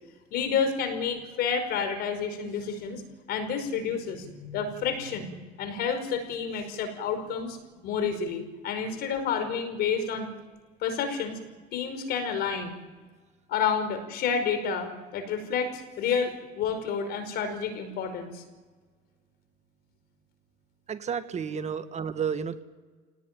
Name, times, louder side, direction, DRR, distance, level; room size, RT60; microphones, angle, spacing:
voice 1, 0.3-3.0 3.3-7.6 7.8-10.3 10.8-11.4 11.7-12.7 13.5-18.4, left 6 dB, 65° left, 9 dB, 5.3 m, -30 dB
voice 2, 20.9-22.6, right 7 dB, 40° right, 10 dB, 1.5 m, -31 dB
27.5 x 18.5 x 9.2 m, 1.5 s
supercardioid pair, 90°, 17 cm